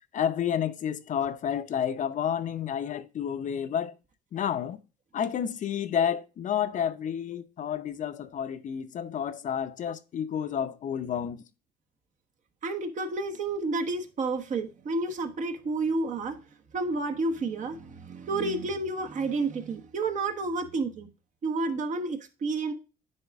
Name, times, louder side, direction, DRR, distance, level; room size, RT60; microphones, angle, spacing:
voice 1, 0.1-4.0 4.3-4.8 5.1-11.4, left 8 dB, 50° left, 0.7 m, -30 dB
voice 2, 12.6-16.4 16.7-21.1 21.4-22.7, right 3 dB, 45° right, 1.1 m, -30 dB
9.8 x 3.6 x 3.4 m
cardioid pair, 110°, 17 cm